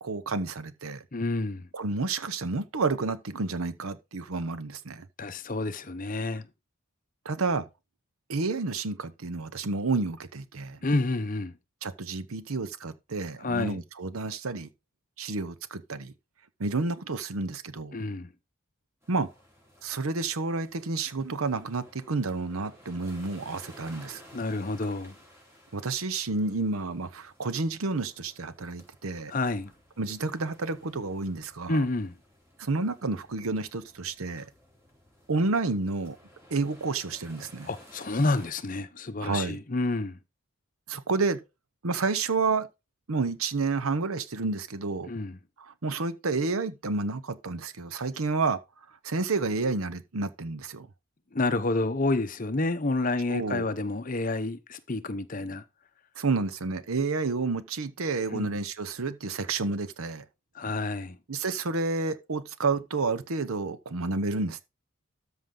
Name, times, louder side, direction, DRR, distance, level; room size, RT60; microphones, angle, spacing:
voice 1, 0.0-1.0 1.7-5.1 7.2-7.7 8.3-10.8 11.8-14.7 15.2-16.1 16.6-18.0 19.1-19.3 19.8-24.2 25.7-29.3 30.0-31.8 32.6-34.5 35.3-36.2 36.5-37.7 39.2-39.6 40.9-41.4 41.8-42.7 43.1-45.1 45.6-48.6 49.0-50.9 53.3-53.7 56.2-60.2 61.3-64.6, right 3 dB, 80° right, 0.9 m, -30 dB
voice 2, 1.1-1.6 5.2-6.5 10.8-11.5 13.4-13.8 17.9-18.3 24.3-25.1 29.3-29.7 31.7-32.1 37.7-40.2 45.1-45.4 51.3-55.6 58.3-58.5 60.5-61.2, left 2 dB, 40° left, 0.8 m, -29 dB
sound 1, 19.0-38.5, equal, 10° right, 4.0 m, -55 dB
13.0 x 5.6 x 3.8 m
head